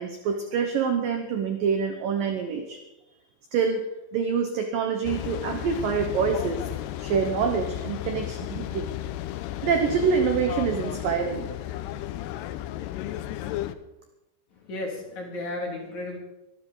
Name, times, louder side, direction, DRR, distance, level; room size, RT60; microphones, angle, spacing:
voice 1, 0.0-2.8 3.5-3.8 4.1-6.6 7.0-8.9 9.6-11.5, right 6 dB, 75° right, 5 dB, 2.0 m, -26 dB
sound 1, 5.0-13.7, left 13 dB, 85° left, 2.3 m, -33 dB
voice 2, 14.5-16.2, left 2 dB, 45° left, 0 dB, 3.1 m, -34 dB
23.5 x 12.5 x 3.9 m, 0.93 s
omnidirectional pair, 5.5 m